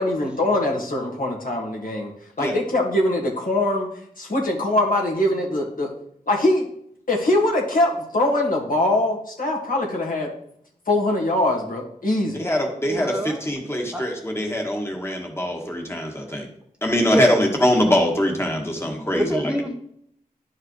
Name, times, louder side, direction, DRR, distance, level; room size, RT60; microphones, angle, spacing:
voice 1, 0.0-2.1 2.4-3.9 4.2-5.9 6.3-6.6 7.1-10.3 10.9-12.5, left 1 dB, 65° left, -2 dB, 1.9 m, -22 dB
voice 2, 12.3-16.5 16.8-19.5, left 1 dB, 15° left, 1 dB, 1.5 m, -23 dB
voice 3, 12.9-13.4 13.9-14.1 16.9-17.4 19.3-19.7, right 1 dB, 5° right, 2 dB, 0.8 m, -26 dB
11.0 x 4.8 x 3.1 m, 0.69 s
wide cardioid pair, 80°, 15 cm